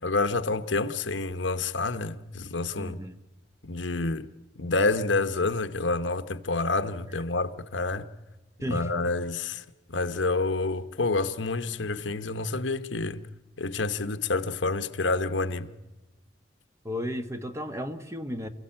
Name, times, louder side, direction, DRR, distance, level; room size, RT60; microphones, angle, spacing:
voice 1, 0.0-3.0 3.6-4.3 4.6-8.1 8.7-9.6 9.9-13.2 13.6-15.7, left 3 dB, 90° left, 1.2 m, -28 dB
voice 2, 2.8-3.2 7.1-7.2 8.6-9.1 16.8-18.5, equal, 15° right, 1.2 m, -34 dB
28.0 x 16.0 x 8.9 m
head